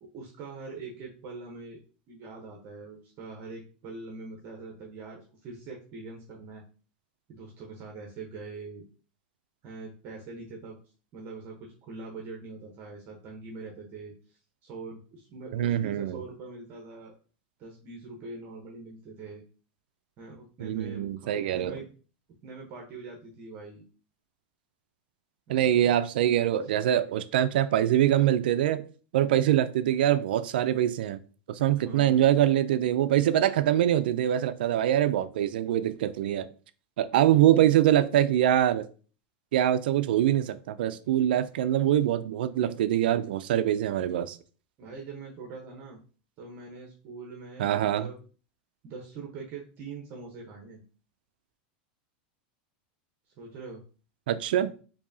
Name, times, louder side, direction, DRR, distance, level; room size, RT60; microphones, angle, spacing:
voice 1, 0.0-1.8 2.1-6.6 7.3-8.8 9.6-10.8 11.1-17.1 17.6-19.4 20.2-21.9 22.4-23.8 25.5-25.9 26.6-26.7 31.7-32.3 37.3-37.8 44.8-46.0 46.4-48.2 48.8-50.8 53.4-53.8 54.6-54.7, right 3 dB, 40° right, 0.9 m, -43 dB
voice 2, 15.5-16.2 20.6-21.8 25.5-28.8 29.1-31.2 31.5-36.5 37.0-38.9 39.5-44.4 47.6-48.1 54.3-54.7, right 11 dB, 85° right, 0.4 m, -24 dB
4.6 x 2.8 x 2.7 m
supercardioid pair, 135°, 5 cm